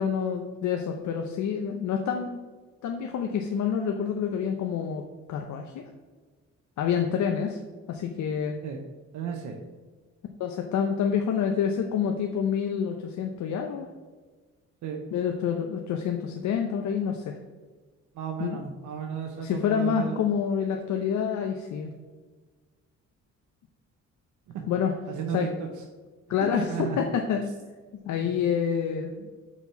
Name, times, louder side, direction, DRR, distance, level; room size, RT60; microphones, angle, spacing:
voice 1, 0.0-2.4 2.8-5.0 5.3-5.8 6.8-7.6 7.9-8.6 10.4-13.9 15.1-17.4 18.4-18.6 19.4-21.9 24.7-24.9 25.3-25.5 26.3-27.4 28.1-29.1, left 7 dB, 70° left, 4 dB, 0.8 m, -27 dB
voice 2, 9.1-9.6 14.8-15.0 18.1-20.2 24.5-24.7 25.1-25.7 26.5-27.0 28.2-28.3 29.2-29.3, right 7 dB, 75° right, 3 dB, 0.9 m, -33 dB
5.9 x 4.6 x 5.7 m, 1.4 s
cardioid pair, 90°, 30 cm